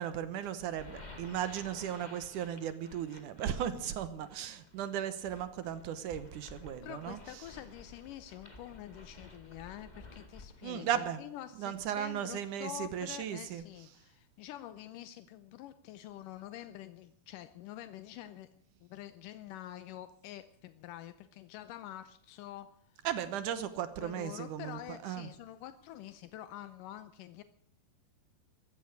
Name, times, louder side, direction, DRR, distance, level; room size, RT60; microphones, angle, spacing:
voice 1, 0.0-7.2 10.6-11.2 11.6-13.6 23.0-25.3, right 10 dB, 70° right, 12 dB, 2.0 m, -36 dB
sound 1, 0.6-10.7, left 2 dB, 45° left, 0.5 m, -53 dB
voice 2, 6.4-23.1 23.6-27.4, left 13 dB, 85° left, 13 dB, 1.9 m, -47 dB
15.0 x 14.0 x 6.5 m, 0.72 s
omnidirectional pair, 4.6 m